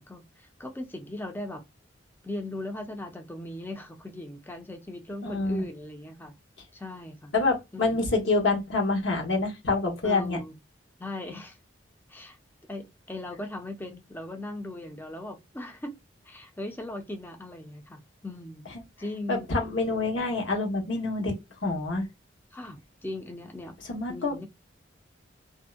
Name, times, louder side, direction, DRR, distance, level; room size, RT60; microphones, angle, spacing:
voice 1, 0.0-1.6 2.2-6.3 6.7-7.3 7.7-8.0 10.0-10.5 11.0-11.6 12.1-12.4 12.7-16.0 16.2-18.6 19.0-19.5 22.5-23.8 24.1-24.5, left 1 dB, 10° left, 0.5 m, -38 dB
voice 2, 5.2-5.6 7.3-10.4 19.3-21.3 21.6-22.1 23.9-24.4, left 3 dB, 70° left, 1.0 m, -26 dB
2.6 x 2.1 x 2.3 m
head